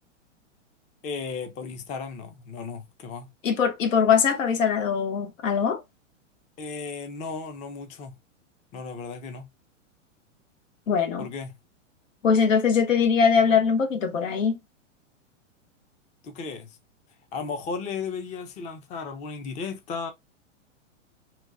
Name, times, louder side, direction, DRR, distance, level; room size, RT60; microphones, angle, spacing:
voice 1, 1.0-3.3 6.6-8.2 8.7-9.5 11.2-11.5 16.2-16.8 17.3-20.1, left 5 dB, 20° left, 0.5 m, -35 dB
voice 2, 3.4-5.8 10.9-11.3 12.2-14.6, left 6 dB, 85° left, 0.9 m, -22 dB
2.9 x 2.2 x 2.3 m
hypercardioid pair, 120°, 38 cm